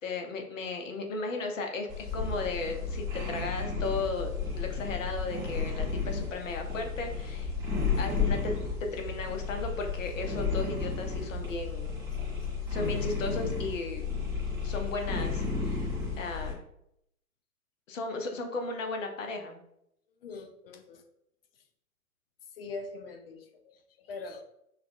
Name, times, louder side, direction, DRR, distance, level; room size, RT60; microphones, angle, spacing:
voice 1, 0.0-4.3 4.6-7.5 8.0-8.5 8.8-11.9 12.7-14.1 14.6-15.9 16.2-16.6 17.9-19.6, left 3 dB, 55° left, 3 dB, 0.9 m, -35 dB
sound 1, 1.9-16.5, left 4 dB, 5° right, 0.7 m, -33 dB
voice 2, 12.1-12.5 20.2-21.0 21.6-21.7 22.5-24.4, left 3 dB, 40° left, 5 dB, 0.6 m, -43 dB
5.7 x 2.4 x 2.4 m, 0.77 s
figure-of-eight pair, 110°, 45 cm